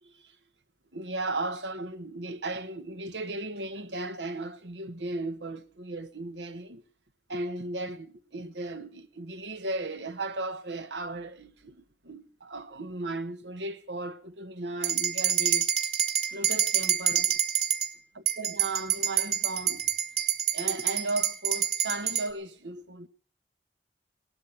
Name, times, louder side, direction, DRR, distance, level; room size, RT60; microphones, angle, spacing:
voice 1, 0.0-0.3 0.9-6.8 7.3-15.7 16.3-17.4 18.1-19.9 20.5-23.1, right 2 dB, 85° right, 1.3 m, -36 dB
sound 1, 14.8-17.9 18.3-22.3, right 10 dB, 35° right, 1.9 m, -27 dB
18.5 x 12.5 x 5.9 m
head